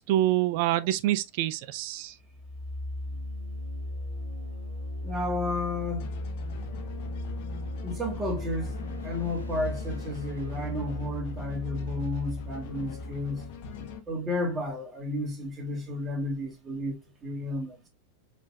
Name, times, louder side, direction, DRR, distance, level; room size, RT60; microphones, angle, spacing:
voice 1, 0.0-2.1, right 14 dB, 45° right, 0.5 m, -26 dB
sound 1, 2.2-14.0, left 1 dB, 85° left, 1.3 m, -37 dB
voice 2, 5.0-6.1 7.8-8.7 9.0-13.5 14.1-16.9 17.2-17.8, left 1 dB, 20° right, 1.9 m, -32 dB
sound 2, 6.0-14.0, left 5 dB, 50° left, 1.1 m, -43 dB
5.1 x 4.0 x 2.3 m
figure-of-eight pair, 90°, 0 cm